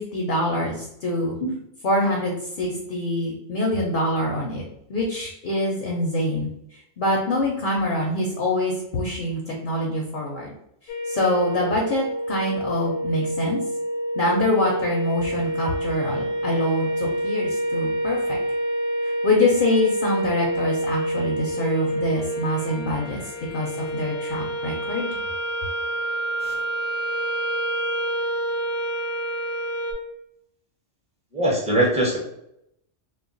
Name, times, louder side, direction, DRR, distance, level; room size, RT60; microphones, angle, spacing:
voice 1, 0.0-1.3 1.8-4.6 4.9-10.5 10.8-13.6 14.1-18.4 19.0-23.2 23.5-25.1, left 1 dB, 55° left, -1 dB, 0.6 m, -25 dB
sound 1, 10.9-29.9, right 1 dB, 85° left, 1.0 m, -27 dB
voice 2, 31.3-32.2, right 1 dB, 10° right, -2 dB, 0.5 m, -21 dB
2.3 x 2.1 x 3.7 m, 0.79 s
omnidirectional pair, 1.2 m